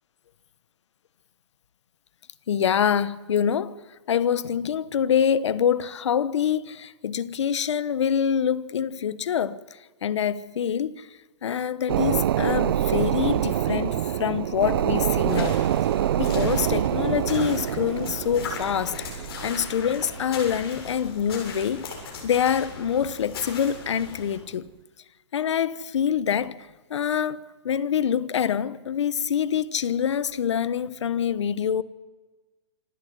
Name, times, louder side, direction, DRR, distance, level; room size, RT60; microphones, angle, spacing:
voice 1, 2.5-3.7 4.1-9.6 10.0-11.1 11.4-15.6 16.2-19.0 19.4-21.8 22.2-24.7 25.3-26.5 26.9-31.8, left 8 dB, 75° left, 1.2 m, -25 dB
sound 1, 11.9-21.9 22.3-22.4, right 11 dB, 50° right, 0.7 m, -26 dB
sound 2, 15.3-24.4, left 5 dB, 55° left, 7.3 m, -39 dB
26.5 x 12.0 x 9.5 m
hypercardioid pair, 165°, 15 cm